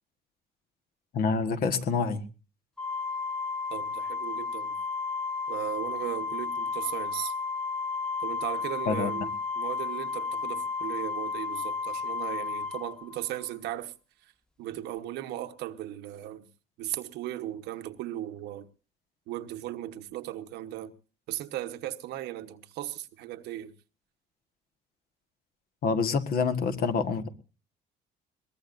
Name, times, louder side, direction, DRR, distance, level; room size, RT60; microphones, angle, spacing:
voice 1, 1.1-2.2 8.9-9.1 25.8-27.3, left 5 dB, 60° left, 1.6 m, -27 dB
Organ, 2.8-13.5, left 4 dB, 5° left, 0.9 m, -33 dB
voice 2, 3.7-4.8 5.5-7.3 8.2-13.9 14.6-16.5 16.8-18.7 19.3-20.9 21.3-23.7, right 13 dB, 85° right, 1.2 m, -37 dB
22.0 x 18.5 x 2.6 m
cardioid pair, 110°, 17 cm